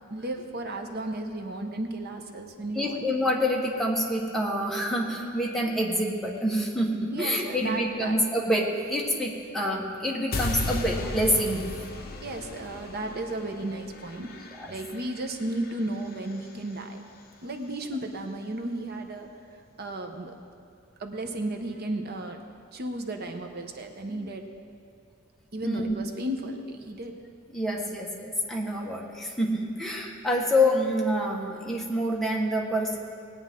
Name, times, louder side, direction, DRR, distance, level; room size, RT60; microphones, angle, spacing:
voice 1, 0.1-3.1 7.1-8.2 12.2-17.0 17.4-19.3 19.8-20.3 21.0-22.4 22.7-24.5 25.5-27.2, right 1 dB, 50° right, 4 dB, 0.9 m, -34 dB
voice 2, 2.7-11.7 14.6-14.7 24.1-24.3 25.6-25.8 27.5-33.0, equal, ahead, -3 dB, 1.4 m, -27 dB
sound 1, 10.3-16.5, left 2 dB, 50° left, 0.9 m, -36 dB
19.5 x 8.9 x 3.7 m, 2.3 s
head